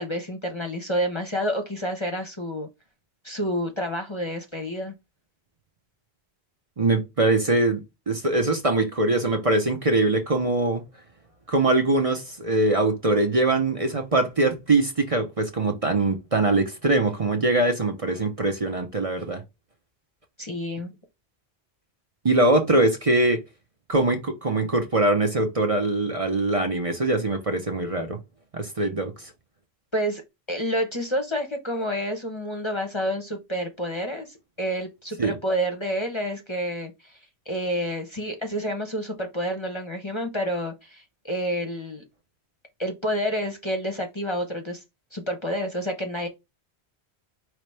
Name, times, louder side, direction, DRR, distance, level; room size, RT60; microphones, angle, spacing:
voice 1, 0.0-2.7 3.2-5.0 20.4-20.9 29.9-30.2 30.5-37.2 37.5-42.0 42.8-44.8 45.1-46.3, equal, 30° left, 0.8 m, -29 dB
voice 2, 6.8-7.8 8.1-10.8 11.5-19.4 22.2-23.4 23.9-28.2 28.5-29.3 35.2-35.3, right 2 dB, 35° right, 0.8 m, -22 dB
5.0 x 3.1 x 3.3 m
omnidirectional pair, 1.1 m